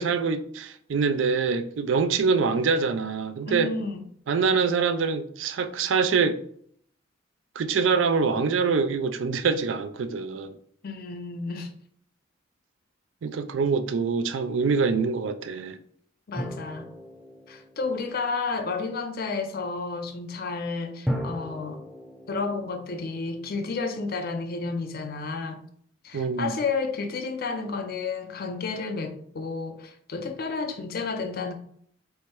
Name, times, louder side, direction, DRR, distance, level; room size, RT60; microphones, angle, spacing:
voice 1, 0.0-3.7 4.3-6.4 7.6-10.5 13.2-15.8 26.1-26.6, right 5 dB, 80° right, 0.4 m, -25 dB
voice 2, 3.4-4.0 10.8-11.7 16.3-16.9 17.5-21.8 22.3-25.6 26.0-31.5, left 4 dB, 55° left, 0.5 m, -31 dB
sound 1, 16.4-18.7 21.1-24.0, equal, ahead, 0.6 m, -36 dB
3.4 x 3.1 x 4.4 m
head